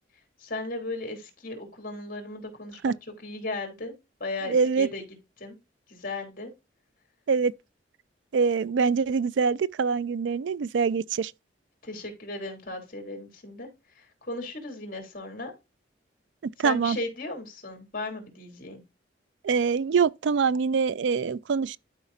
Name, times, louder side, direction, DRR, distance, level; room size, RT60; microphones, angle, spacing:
voice 1, 0.4-2.9 3.2-3.9 4.2-5.0 5.4-5.6 5.9-6.5 11.8-13.7 14.0-15.5 16.6-18.8, left 2 dB, 50° left, 3.0 m, -36 dB
voice 2, 4.5-4.9 7.3-7.5 8.3-11.3 16.4-17.0 19.4-21.8, right 5 dB, 85° right, 0.4 m, -24 dB
12.0 x 5.0 x 2.6 m
head